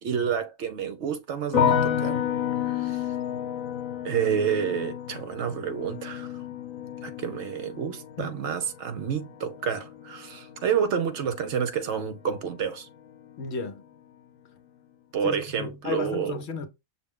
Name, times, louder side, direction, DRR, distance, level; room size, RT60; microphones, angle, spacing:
voice 1, 0.0-2.3 2.6-3.1 4.0-6.4 7.0-12.9 15.1-16.4, right 7 dB, 65° right, 0.9 m, -29 dB
sound 1, 1.5-12.6 12.9-13.6, left 9 dB, 90° left, 1.0 m, -31 dB
voice 2, 13.4-13.8 15.2-16.7, left 4 dB, 60° left, 0.9 m, -33 dB
6.1 x 2.2 x 3.6 m
omnidirectional pair, 1.4 m